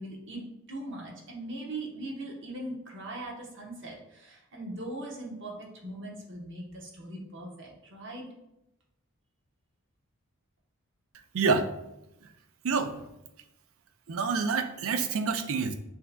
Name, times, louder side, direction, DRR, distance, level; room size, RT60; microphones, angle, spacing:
voice 1, 0.0-8.3, right 1 dB, 60° right, -2 dB, 1.0 m, -40 dB
voice 2, 11.3-11.7 12.6-13.0 14.1-15.7, right 4 dB, 80° right, 8 dB, 0.4 m, -27 dB
6.3 x 2.8 x 2.2 m, 0.88 s
head